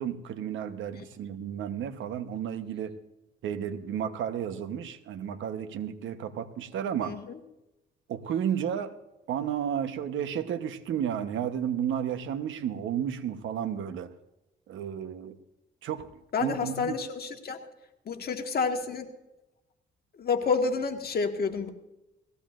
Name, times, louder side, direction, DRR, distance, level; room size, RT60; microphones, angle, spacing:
voice 1, 0.0-3.0 3.4-7.2 8.1-9.0 9.3-14.1 14.7-15.4 15.8-16.1 16.4-17.0, right 9 dB, 75° right, 9 dB, 1.1 m, -32 dB
voice 2, 7.0-7.4 16.3-17.6 18.0-19.1 20.2-21.7, left 5 dB, 50° left, 4 dB, 1.7 m, -29 dB
20.0 x 15.5 x 2.5 m, 0.95 s
cardioid pair, 90°, 20 cm